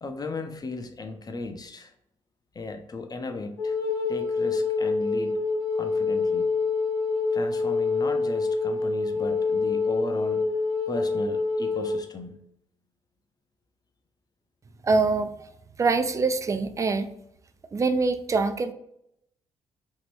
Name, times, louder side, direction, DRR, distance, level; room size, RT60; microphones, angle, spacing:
voice 1, 0.0-1.9 2.5-3.8 4.1-5.4 5.8-6.5 7.3-10.5 10.9-12.3, left 3 dB, 25° left, 6 dB, 0.5 m, -36 dB
Wind instrument woodwind instrument, 3.6-12.0, left 4 dB, 80° left, 0.6 m, -26 dB
voice 2, 14.8-15.3 15.8-17.1 17.7-18.7, right 4 dB, 20° right, 9 dB, 0.4 m, -24 dB
2.9 x 2.7 x 3.1 m, 0.77 s
figure-of-eight pair, 40°, 15 cm